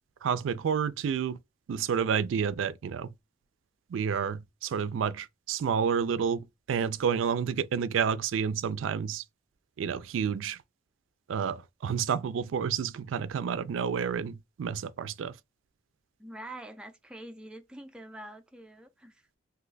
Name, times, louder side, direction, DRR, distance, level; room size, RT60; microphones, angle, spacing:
voice 1, 0.2-1.4 1.7-3.1 3.9-9.2 9.8-10.6 11.3-15.3, right 7 dB, 85° right, 0.3 m, -30 dB
voice 2, 16.2-19.3, right 1 dB, 5° right, 0.3 m, -45 dB
2.7 x 2.2 x 3.8 m
head